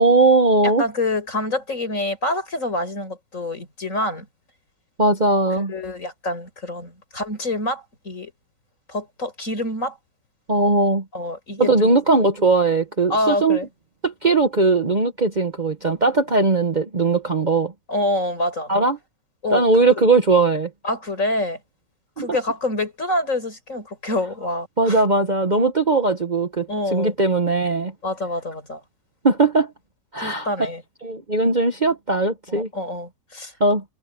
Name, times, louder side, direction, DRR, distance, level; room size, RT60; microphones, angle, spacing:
voice 1, 0.0-0.8 5.0-5.7 10.5-11.0 11.6-13.6 14.0-17.7 18.7-19.0 19.5-20.7 22.2-22.3 24.8-27.9 29.2-29.7 30.1-30.7 31.0-32.7 33.6-33.8, right 3 dB, 30° right, 1.1 m, -19 dB
voice 2, 0.8-4.3 5.7-8.3 8.9-10.0 11.1-12.0 13.1-13.7 17.9-18.7 19.4-19.6 20.8-21.6 22.2-25.0 26.7-27.1 28.0-28.8 30.2-30.8 32.6-33.5, left 1 dB, 55° left, 5.8 m, -26 dB
omnidirectional pair, 1.7 m